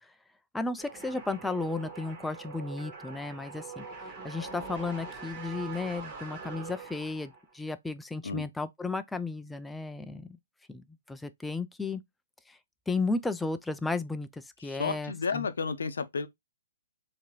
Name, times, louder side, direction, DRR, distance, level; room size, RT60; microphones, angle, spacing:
voice 1, 0.5-3.9 4.2-10.4 10.7-12.0 12.5-12.6 12.9-15.5, left 3 dB, 5° left, 0.3 m, -34 dB
sound 1, 0.8-7.5, right 4 dB, 30° right, 1.4 m, -43 dB
voice 2, 14.6-16.3, left 5 dB, 75° left, 0.5 m, -32 dB
3.6 x 2.8 x 3.0 m
figure-of-eight pair, 125°, 0 cm